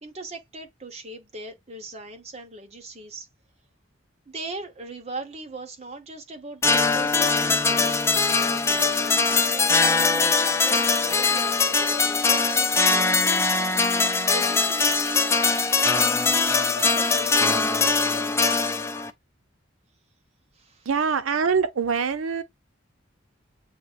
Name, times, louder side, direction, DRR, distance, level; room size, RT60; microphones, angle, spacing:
voice 1, 0.0-3.3 4.3-7.9 8.5-13.8 14.3-15.2 16.7-18.1 20.5-20.9, right 3 dB, 30° right, 0.9 m, -40 dB
sound 1, 6.6-19.1, left 4 dB, 15° left, 0.3 m, -21 dB
voice 2, 20.8-22.4, right 6 dB, 85° right, 0.6 m, -24 dB
7.5 x 2.7 x 2.4 m
head